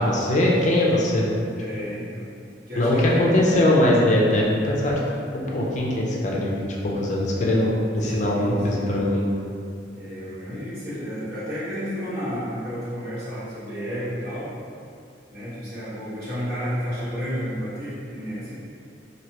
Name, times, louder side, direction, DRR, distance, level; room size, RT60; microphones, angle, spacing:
voice 1, 0.0-1.4 2.8-5.0 5.3-9.3, left 1 dB, 40° left, -3 dB, 0.5 m, -21 dB
voice 2, 1.5-2.3 2.7-3.4 8.0-8.9 9.9-14.5 15.3-18.6, equal, 55° right, -12 dB, 1.3 m, -31 dB
3.1 x 2.7 x 2.8 m, 2.4 s
head